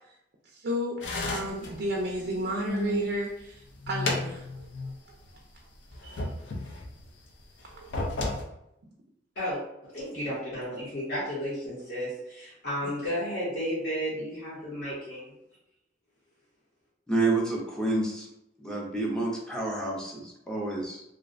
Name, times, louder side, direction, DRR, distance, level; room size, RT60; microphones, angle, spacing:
voice 1, 0.4-1.0 1.2-4.7 5.1-5.2 6.0-6.2 7.7-8.1 12.8-12.9, right 1 dB, 60° right, -1 dB, 0.4 m, -33 dB
sound 1, 1.0-3.1 3.5-4.9 5.2-5.3 5.9-7.1 7.7-8.4, left 2 dB, 85° left, 0.5 m, -33 dB
voice 2, 9.4-15.3, equal, 60° left, -9 dB, 0.8 m, -33 dB
voice 3, 17.1-18.3 18.6-21.0, right 2 dB, 5° left, -3 dB, 0.5 m, -29 dB
2.5 x 2.0 x 2.4 m, 0.82 s
head